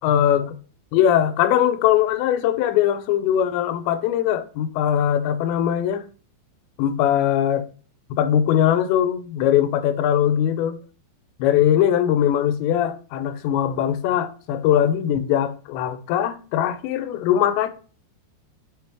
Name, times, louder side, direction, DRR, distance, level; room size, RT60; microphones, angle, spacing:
voice 1, 0.0-0.6 0.9-6.1 6.8-7.7 8.1-10.8 11.4-17.7, left 10 dB, 90° left, 2.9 m, -21 dB
5.9 x 5.5 x 3.4 m
omnidirectional pair, 5.0 m